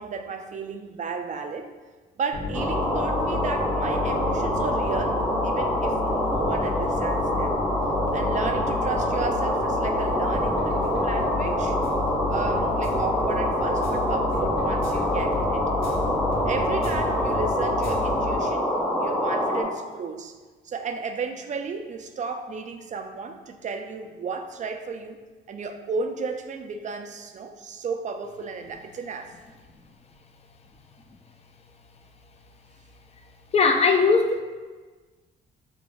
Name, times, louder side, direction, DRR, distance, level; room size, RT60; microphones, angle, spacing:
voice 1, 0.0-1.7 2.2-7.6 8.1-11.8 12.3-16.0 16.5-18.6 19.0-20.3 20.6-25.2 25.5-29.3, right 5 dB, 40° right, 6 dB, 0.4 m, -33 dB
sound 1, 2.3-18.8, left 4 dB, 80° left, 0.9 m, -32 dB
sound 2, 2.5-19.6, equal, 10° left, 1.0 m, -25 dB
voice 2, 33.5-34.4, left 4 dB, 30° left, 5 dB, 0.4 m, -19 dB
4.9 x 2.5 x 2.3 m, 1.3 s
cardioid pair, 90°, 20 cm